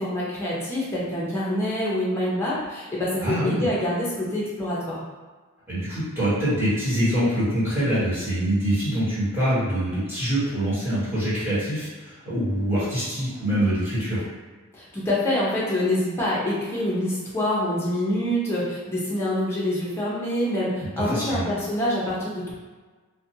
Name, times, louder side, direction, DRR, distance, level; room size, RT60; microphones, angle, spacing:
voice 1, 0.0-5.0 14.7-22.5, left 1 dB, 10° left, -7 dB, 0.6 m, -26 dB
voice 2, 3.2-3.7 5.7-14.2 21.0-21.4, right 1 dB, 10° right, -13 dB, 1.4 m, -24 dB
2.5 x 2.2 x 2.7 m, 1.3 s
head